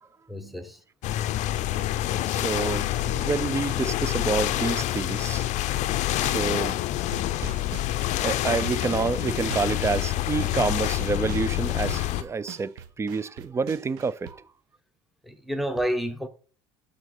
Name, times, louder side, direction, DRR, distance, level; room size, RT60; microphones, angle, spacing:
voice 1, 0.3-0.8 15.2-16.3, equal, ahead, 0.9 m, -29 dB
sound 1, 1.0-12.2, left 14 dB, 50° left, 0.5 m, -27 dB
voice 2, 2.3-5.5 6.2-6.8 8.2-14.4, right 4 dB, 20° right, 0.4 m, -28 dB
sound 2, 6.0-6.7 7.1-9.9 10.1-14.3, right 8 dB, 70° right, 1.0 m, -41 dB
6.1 x 4.0 x 5.8 m
supercardioid pair, 95°, 15 cm